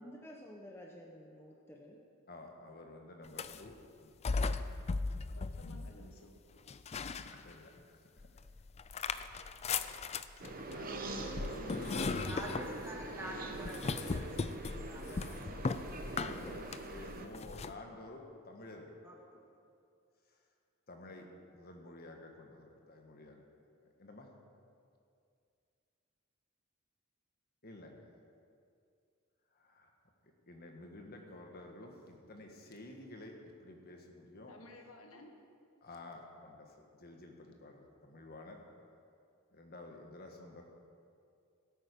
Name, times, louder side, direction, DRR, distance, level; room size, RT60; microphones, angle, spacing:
voice 1, 0.0-2.0, equal, 10° left, -1 dB, 0.9 m, -51 dB
voice 2, 2.3-3.7 4.0-4.2 7.4-8.3 8.9-9.9 10.4-12.3 13.0-13.5 16.1-18.9 20.9-23.4 24.0-24.3 27.6-28.0 29.5-29.9 30.5-34.5 35.8-38.6 39.5-40.6, left 2 dB, 50° left, 2 dB, 1.5 m, -51 dB
sound 1, 3.2-3.7 4.2-6.2 6.7-7.8 8.2-17.7, left 4 dB, 30° left, 0.4 m, -38 dB
voice 3, 5.3-6.6 31.2-31.3 34.5-35.3, left 1 dB, 85° left, 3 dB, 1.5 m, -55 dB
sound 2, 10.4-17.3, right 2 dB, 45° right, 1.0 m, -44 dB
voice 4, 12.3-15.7 19.0-19.4, equal, 10° right, -3 dB, 2.2 m, -47 dB
17.0 x 8.8 x 5.3 m, 2.4 s
head